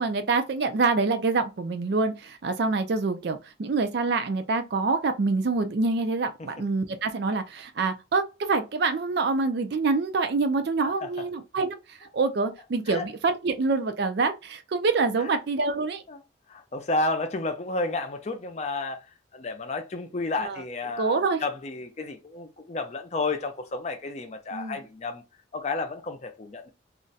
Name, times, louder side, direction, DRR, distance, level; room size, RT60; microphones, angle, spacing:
voice 1, 0.0-16.0 20.4-20.6 21.0-21.4 24.5-24.8, right 3 dB, 55° right, 0.4 m, -26 dB
voice 2, 16.5-19.1 19.3-25.2 25.5-26.7, left 3 dB, 35° left, 0.5 m, -31 dB
2.4 x 2.1 x 3.9 m
head